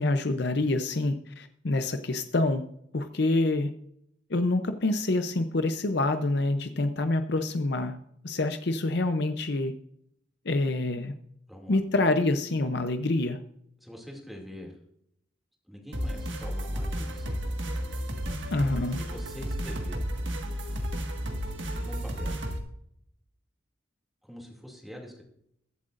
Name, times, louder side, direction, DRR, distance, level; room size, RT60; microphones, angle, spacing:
voice 1, 0.0-2.6 2.9-3.7 4.3-8.0 8.2-9.7 10.4-11.1 11.7-13.4 18.5-19.0, left 2 dB, 55° left, 8 dB, 0.6 m, -26 dB
voice 2, 11.5-11.8 13.8-14.8 15.7-17.3 19.0-20.1 21.8-22.4 24.2-25.2, equal, ahead, -1 dB, 2.4 m, -44 dB
sound 1, 15.9-22.6, equal, 70° right, 1.7 m, -32 dB
22.0 x 7.8 x 2.5 m, 0.74 s
head